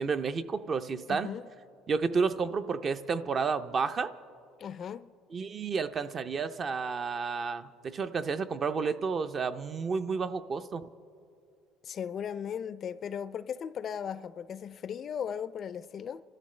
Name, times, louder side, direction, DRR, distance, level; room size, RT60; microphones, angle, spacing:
voice 1, 0.0-1.3 1.9-4.1 5.3-10.8, right 5 dB, 35° right, 0.4 m, -31 dB
voice 2, 1.1-1.4 4.6-5.1 11.8-16.2, left 8 dB, 40° left, 0.3 m, -37 dB
29.5 x 13.0 x 3.2 m
cardioid pair, 135°, 0 cm